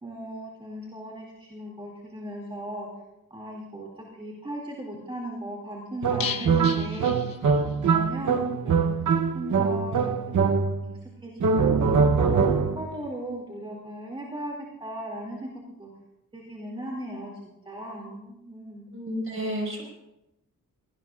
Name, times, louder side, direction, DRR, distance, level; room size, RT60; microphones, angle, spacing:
voice 1, 0.0-3.0 3.3-9.0 9.3-10.2 10.4-10.6 10.9-11.3 11.6-14.5 14.8-15.5 15.8-15.9 16.3-17.3 17.6-18.9, right 1 dB, 15° right, -3 dB, 2.4 m, -37 dB
sound 1, 6.0-11.0 11.4-12.9, right 5 dB, 60° right, 0.8 m, -23 dB
sound 2, 6.2-8.0 8.3-8.4 8.7-8.8, left 7 dB, 85° left, 0.8 m, -36 dB
voice 2, 18.9-19.8, equal, 40° right, -1 dB, 5.1 m, -31 dB
23.5 x 17.0 x 2.4 m, 0.91 s
wide cardioid pair, 180°, 33 cm